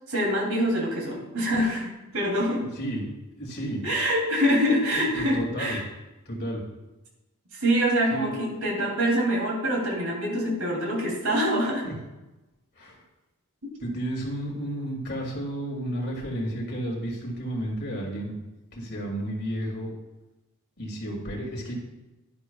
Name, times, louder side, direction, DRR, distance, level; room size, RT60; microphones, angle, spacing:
voice 1, 0.1-2.6 3.8-5.8 7.5-11.8 13.6-13.7, equal, 75° right, -2 dB, 2.9 m, -25 dB
voice 2, 3.4-3.8 5.2-5.8 6.3-6.6 8.1-8.5 11.8-11.9 12.8-13.0 13.8-18.3 18.7-19.9 20.8-21.8, right 1 dB, 50° left, -1 dB, 2.5 m, -32 dB
11.0 x 11.0 x 2.3 m, 1.0 s
head